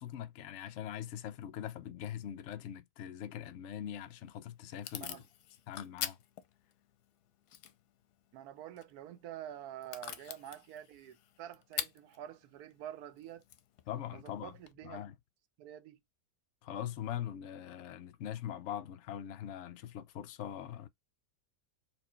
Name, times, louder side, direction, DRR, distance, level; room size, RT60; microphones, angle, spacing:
voice 1, 0.0-5.2 5.7-6.2 13.9-14.5 14.8-15.1 16.6-20.9, left 10 dB, 65° left, 0.7 m, -42 dB
Packing tape duct tape / Tearing, 3.9-14.7, left 11 dB, 85° left, 1.2 m, -47 dB
voice 2, 8.3-13.4 14.1-15.0 15.6-16.0, right 11 dB, 75° right, 1.1 m, -47 dB
4.4 x 2.5 x 4.2 m
omnidirectional pair, 1.6 m